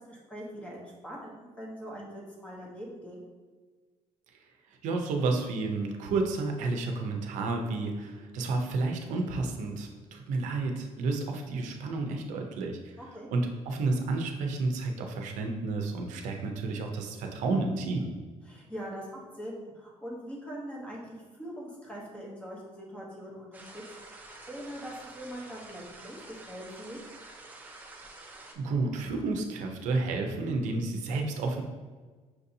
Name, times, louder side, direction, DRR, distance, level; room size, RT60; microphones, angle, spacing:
voice 1, 0.0-3.3 13.0-13.3 18.4-27.0, equal, 10° left, -3 dB, 0.8 m, -42 dB
voice 2, 4.8-12.9 13.3-18.1 28.6-31.6, right 3 dB, 85° right, 3 dB, 0.6 m, -31 dB
sound 1, 23.5-28.5, right 2 dB, 15° right, 0.4 m, -48 dB
5.9 x 2.7 x 2.6 m, 1.4 s
cardioid pair, 170°, 12 cm